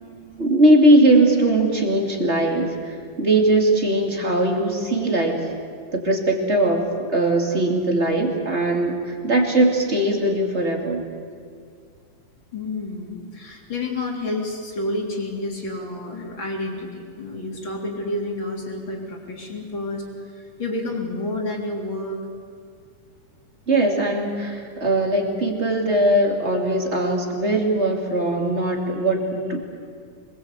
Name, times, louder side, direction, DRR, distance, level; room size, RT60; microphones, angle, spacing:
voice 1, 0.0-5.5 5.9-11.0 23.7-29.6, right 1 dB, 20° right, 1 dB, 2.7 m, -20 dB
voice 2, 12.5-22.2, left 2 dB, 40° left, 0 dB, 4.0 m, -29 dB
26.0 x 21.0 x 8.3 m, 2.2 s
omnidirectional pair, 3.5 m